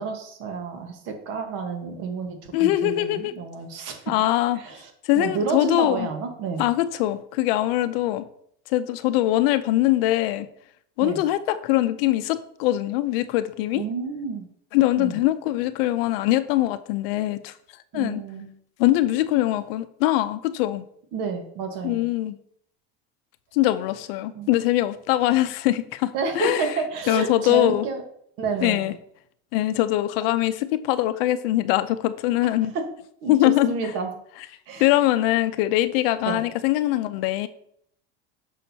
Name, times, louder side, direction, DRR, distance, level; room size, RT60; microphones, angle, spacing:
voice 1, 0.0-4.0 4.5-6.6 11.0-11.2 13.7-14.5 14.9-15.2 17.9-18.5 21.1-22.0 24.3-24.5 26.1-28.0 28.4-28.9 32.7-32.8 33.2-34.1 34.7-34.9 36.3-36.4, right 4 dB, 55° right, 5 dB, 1.3 m, -30 dB
voice 2, 2.5-3.3 4.1-4.6 5.0-6.1 6.6-8.3 8.7-10.5 11.0-13.8 14.7-17.5 17.9-18.2 18.8-20.9 21.8-22.4 23.5-26.7 27.1-27.9 28.6-28.9 29.5-32.7 33.3-33.7 34.8-37.5, left 15 dB, 75° left, 13 dB, 0.5 m, -22 dB
6.4 x 6.0 x 2.7 m, 0.68 s
cardioid pair, 155°, 29 cm